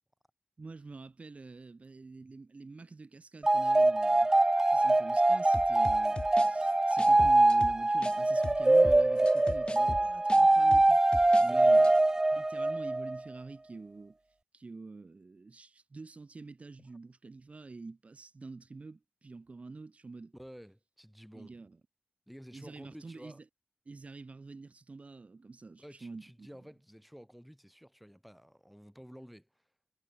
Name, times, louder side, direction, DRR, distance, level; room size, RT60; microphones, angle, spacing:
voice 1, 0.6-4.3 4.7-11.0 11.4-11.9 12.3-14.2 14.5-20.3 21.3-21.8 22.5-23.4 23.8-26.5, right 3 dB, 45° right, 4.8 m, -47 dB
sound 1, 3.4-13.2, right 2 dB, 20° right, 0.4 m, -24 dB
sound 2, 5.5-8.2 8.4-11.5 11.8-12.0, left 2 dB, 30° left, 3.3 m, -40 dB
voice 2, 11.4-11.9 16.8-16.9 20.3-21.5 22.3-23.4 25.8-29.6, equal, ahead, 6.6 m, -52 dB
wide cardioid pair, 130°, 3 cm